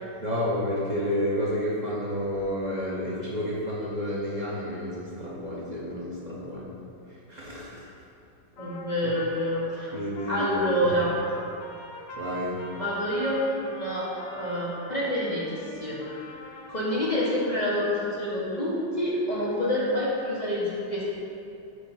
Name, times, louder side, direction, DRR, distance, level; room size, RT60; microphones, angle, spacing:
voice 1, 0.2-6.7 7.3-7.8 9.0-9.1 9.9-10.8 12.2-12.7, left 1 dB, 60° right, -6 dB, 0.4 m, -30 dB
Trumpet, 8.6-17.1, left 1 dB, 90° left, 0.5 m, -44 dB
voice 2, 8.6-9.9 10.3-11.1 12.7-13.4 13.6-14.1 14.3-15.5 15.8-16.2 16.7-21.0, equal, 30° left, -7 dB, 0.8 m, -27 dB
5.0 x 4.5 x 5.5 m, 2.6 s
omnidirectional pair, 2.0 m